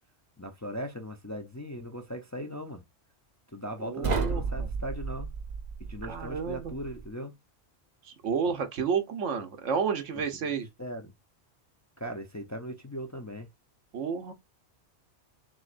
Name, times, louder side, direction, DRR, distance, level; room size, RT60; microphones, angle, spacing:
voice 1, 0.4-2.8 3.5-5.3 5.8-7.4 10.1-10.2 10.8-11.1 12.0-13.5, equal, 20° left, 0.5 m, -38 dB
voice 2, 3.8-4.7 6.0-6.7 8.0-10.7 13.9-14.3, right 6 dB, 85° right, 1.3 m, -31 dB
sound 1, 4.0-7.1, right 5 dB, 45° right, 0.7 m, -33 dB
6.2 x 3.1 x 2.5 m
omnidirectional pair, 1.2 m